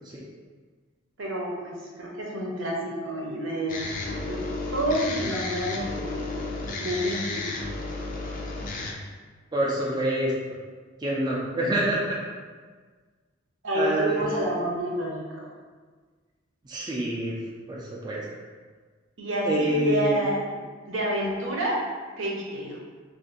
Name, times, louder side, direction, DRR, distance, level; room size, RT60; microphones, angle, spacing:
voice 1, 1.2-3.9 4.3-4.4 4.7-6.2 6.8-7.4 13.6-15.5 19.2-20.4 20.9-21.8 22.2-22.8, right 1 dB, 75° right, -3 dB, 0.8 m, -29 dB
sound 1, 3.7-8.9, left 3 dB, 40° left, 0.4 m, -33 dB
voice 2, 9.5-10.3 11.0-12.2 13.8-14.2 16.7-17.3 17.7-18.2 19.4-20.2, right 1 dB, 20° right, -5 dB, 0.4 m, -26 dB
2.6 x 2.5 x 3.8 m, 1.5 s
head